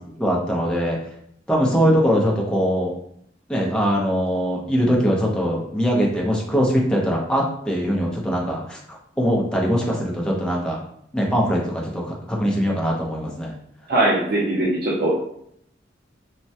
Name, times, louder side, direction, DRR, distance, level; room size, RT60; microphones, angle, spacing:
voice 1, 0.2-1.0 1.5-2.9 3.5-10.8 11.1-13.5, equal, 5° left, -2 dB, 0.5 m, -22 dB
voice 2, 13.9-15.2, right 1 dB, 55° right, -5 dB, 0.5 m, -20 dB
3.2 x 2.1 x 2.7 m, 0.70 s
head